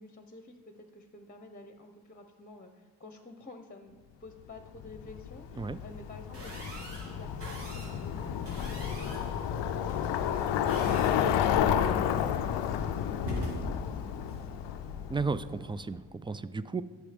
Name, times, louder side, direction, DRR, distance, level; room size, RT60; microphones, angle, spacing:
voice 1, 0.0-13.3 13.7-14.6, left 2 dB, 20° left, 7 dB, 0.9 m, -50 dB
Bicycle, 4.8-15.7, left 9 dB, 90° left, 0.5 m, -31 dB
sound 1, 6.3-15.5, equal, 80° right, 2.4 m, -43 dB
voice 2, 15.1-16.8, right 4 dB, 15° right, 15 dB, 0.3 m, -34 dB
8.4 x 6.3 x 5.2 m, 1.4 s
supercardioid pair, 45°, 41 cm